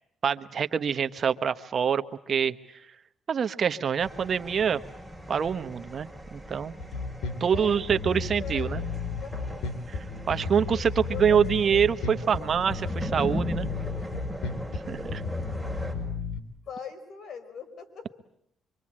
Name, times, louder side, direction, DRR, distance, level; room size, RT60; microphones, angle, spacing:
voice 1, 0.2-2.5 3.3-4.8 5.3-6.7 7.4-8.8 10.3-13.7 14.9-15.2, right 7 dB, 50° right, 10 dB, 1.2 m, -25 dB
sound 1, 4.0-15.9, equal, 5° left, 6.6 m, -39 dB
Bass guitar, 6.8-16.4, left 4 dB, 85° left, 3.1 m, -33 dB
voice 2, 7.5-8.9 9.2-9.6 10.7-11.8 12.1-12.5 16.7-18.1, left 7 dB, 60° left, 8 dB, 4.8 m, -42 dB
26.0 x 25.0 x 8.8 m, 0.77 s
cardioid pair, 90°, 0 cm